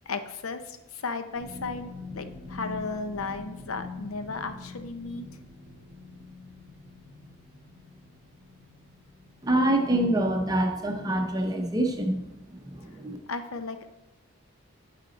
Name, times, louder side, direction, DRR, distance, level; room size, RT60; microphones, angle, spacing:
voice 1, 0.1-5.3 13.3-13.9, left 4 dB, 90° left, 9 dB, 0.7 m, -35 dB
sound 1, 1.3-12.0 12.3-12.7 13.0-13.2, left 3 dB, 10° left, 2.1 m, -45 dB
voice 2, 9.4-13.2, right 1 dB, 20° right, 3 dB, 0.7 m, -26 dB
11.0 x 5.1 x 4.0 m, 0.97 s
head